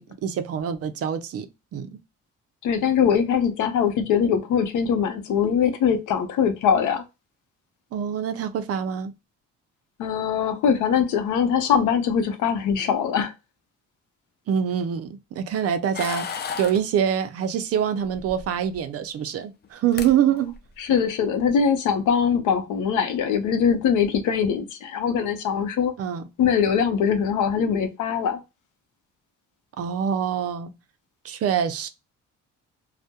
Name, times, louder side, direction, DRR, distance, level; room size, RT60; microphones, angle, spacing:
voice 1, 0.0-1.5 1.7-1.9 7.9-9.1 14.5-16.3 16.6-20.5 26.0-26.3 29.8-30.7 31.2-31.9, right 8 dB, 55° right, 0.4 m, -25 dB
voice 2, 2.6-7.0 10.0-13.3 20.8-25.9 26.4-28.4, left 7 dB, 80° left, 0.6 m, -22 dB
sound 1, 15.9-16.8 18.1-18.8 19.6-19.7 19.9-20.1 20.5-20.9, left 6 dB, 35° left, 0.4 m, -33 dB
2.2 x 2.1 x 2.7 m
cardioid pair, 90°, 30 cm